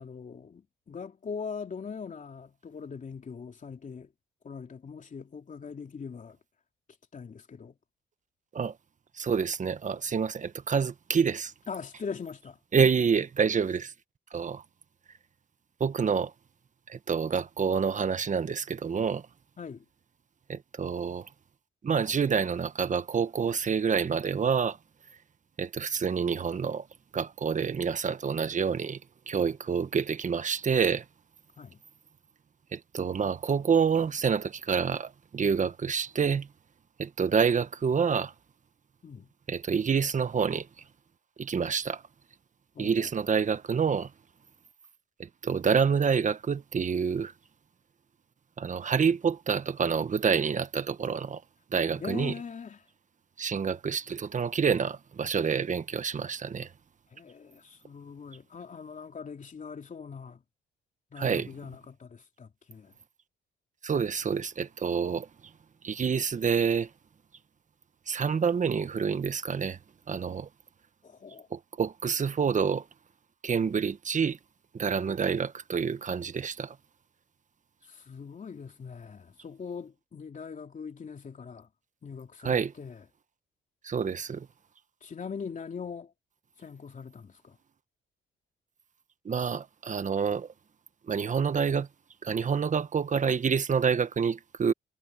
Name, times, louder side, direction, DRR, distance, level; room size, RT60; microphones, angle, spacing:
voice 1, 0.0-4.1 4.4-6.4 7.1-7.8 11.7-12.6 19.6-19.8 31.6-31.8 39.0-39.3 42.7-43.1 52.0-52.8 57.1-60.4 61.1-62.9 71.0-71.5 77.8-81.7 82.0-83.0 85.0-86.1 86.6-87.6, left 6 dB, 40° left, 3.3 m, -41 dB
voice 2, 9.2-11.5 12.7-13.9 14.3-14.6 15.8-16.3 17.1-19.2 20.5-21.2 21.8-24.8 25.6-26.8 27.1-29.0 29.3-31.0 32.7-35.1 35.3-36.5 37.0-38.3 39.5-40.6 41.4-42.0 42.8-44.1 45.4-47.3 48.6-51.4 51.7-52.3 53.4-56.7 61.2-61.5 63.8-65.2 65.8-66.9 68.1-69.8 70.1-70.5 71.5-72.8 73.4-74.4 74.8-76.7 82.4-82.7 83.9-84.4 89.2-90.5 91.1-91.9 92.2-94.7, right 6 dB, 40° right, 1.4 m, -27 dB
cardioid pair, 90°, 20 cm